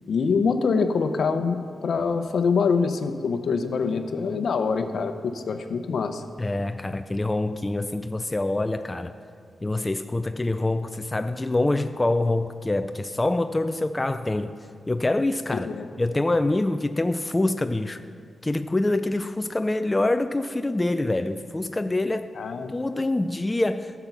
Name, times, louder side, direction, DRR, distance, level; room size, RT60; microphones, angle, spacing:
voice 1, 0.1-6.2 15.5-15.9 22.4-22.7, left 5 dB, 65° left, 8 dB, 0.8 m, -25 dB
voice 2, 6.4-9.1 9.6-14.5 14.9-15.7 16.0-18.0 18.4-22.3 22.7-23.9, left 2 dB, 20° left, 9 dB, 0.4 m, -25 dB
14.5 x 6.9 x 6.0 m, 2.1 s
wide cardioid pair, 110°, 0 cm